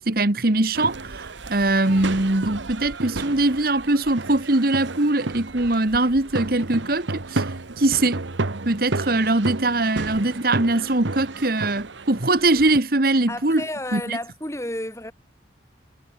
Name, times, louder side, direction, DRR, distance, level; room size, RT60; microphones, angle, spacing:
voice 1, 0.0-8.2 8.6-13.6 13.9-14.2, right 2 dB, 50° right, 1.6 m, -22 dB
sound 1, 0.7-12.8, right 2 dB, 90° right, 1.4 m, -32 dB
voice 2, 13.3-15.1, left 1 dB, 15° left, 6.2 m, -31 dB
head